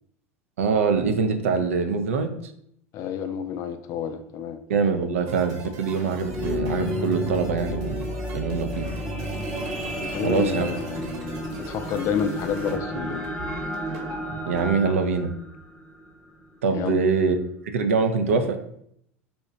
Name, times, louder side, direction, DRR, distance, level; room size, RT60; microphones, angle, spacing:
voice 1, 0.6-2.5 4.7-8.9 10.2-10.7 14.5-15.3 16.6-17.4 17.7-18.6, right 5 dB, 80° right, 6 dB, 0.4 m, -24 dB
voice 2, 2.9-4.6 10.0-13.3 16.7-17.1, left 8 dB, 45° left, 9 dB, 0.4 m, -30 dB
sound 1, 5.3-14.7, right 2 dB, 55° right, 0.9 m, -40 dB
sound 2, 6.0-16.5 17.1-17.2, equal, 5° left, 0.6 m, -32 dB
2.8 x 2.2 x 3.8 m, 0.71 s
hypercardioid pair, 85°, 7 cm